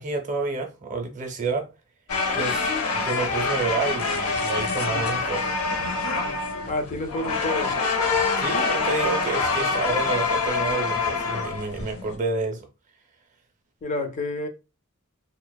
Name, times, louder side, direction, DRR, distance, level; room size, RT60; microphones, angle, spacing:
voice 1, 0.0-1.7 2.3-5.5 8.4-12.7, right 3 dB, 35° right, 0.5 m, -29 dB
sound 1, 2.1-12.2, left 4 dB, 80° left, 0.6 m, -25 dB
voice 2, 6.7-7.8 13.8-14.5, left 2 dB, 35° left, 0.3 m, -29 dB
2.7 x 2.0 x 2.2 m
head